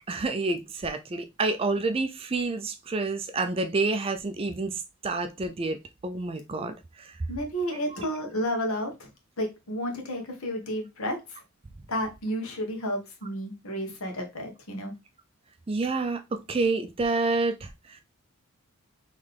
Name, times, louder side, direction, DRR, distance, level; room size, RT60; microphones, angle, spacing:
voice 1, 0.1-4.7 5.0-5.8 6.0-7.2 15.7-17.7, right 3 dB, 25° right, 0.4 m, -28 dB
voice 2, 7.3-9.1 9.4-11.2 11.9-14.9, equal, 75° left, 1.3 m, -31 dB
4.0 x 3.2 x 3.3 m
head